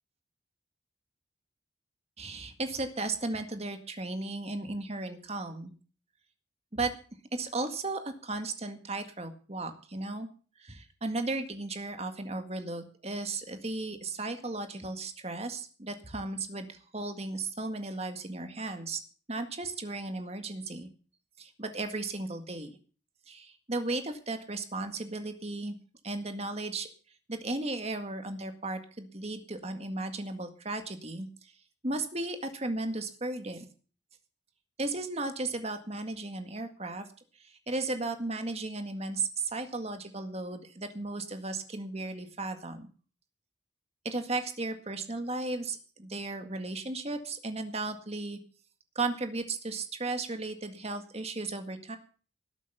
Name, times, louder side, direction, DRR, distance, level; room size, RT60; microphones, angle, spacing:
voice 1, 2.2-5.7 6.7-6.9 7.3-10.3 10.6-19.0 19.3-20.9 21.4-22.8 23.3-25.8 26.0-26.9 27.3-31.5 31.8-33.7 34.8-37.1 37.4-42.9 44.1-48.4 49.0-52.0, right 2 dB, 35° right, 7 dB, 1.9 m, -35 dB
18.5 x 8.1 x 6.9 m, 0.40 s
head